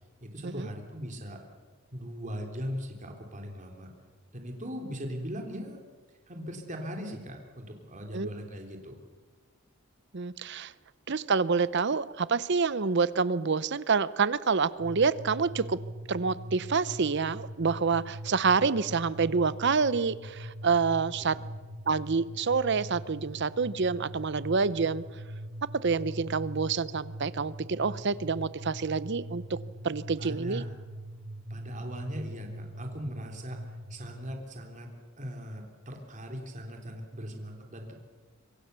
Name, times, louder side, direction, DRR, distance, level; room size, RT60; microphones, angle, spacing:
voice 1, 0.2-1.4 1.9-3.9 4.3-5.8 6.3-9.0 21.2-21.4 30.2-30.7 31.5-33.6 33.9-37.9, equal, 35° right, 3 dB, 3.5 m, -39 dB
voice 2, 10.1-10.7 11.1-15.8 16.1-21.4 21.9-25.0 25.8-29.6 29.8-30.6, right 5 dB, 55° right, 17 dB, 0.7 m, -27 dB
sound 1, 14.8-34.3, right 1 dB, 75° right, 2.0 m, -42 dB
26.0 x 24.5 x 6.9 m, 1.4 s
head